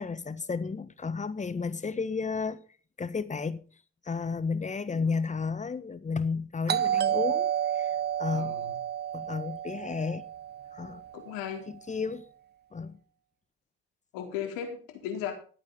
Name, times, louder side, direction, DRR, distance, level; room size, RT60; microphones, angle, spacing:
voice 1, 0.0-2.6 3.0-3.6 4.0-8.6 9.1-10.2 10.7-11.0 11.7-12.2 12.7-13.0, left 5 dB, 25° left, 1.4 m, -32 dB
Doorbell, 6.7-11.3, right 10 dB, 30° right, 0.6 m, -30 dB
voice 2, 8.3-8.8 11.1-11.6 14.1-15.3, left 9 dB, 75° left, 4.0 m, -36 dB
14.5 x 8.6 x 5.5 m
supercardioid pair, 75°, 32 cm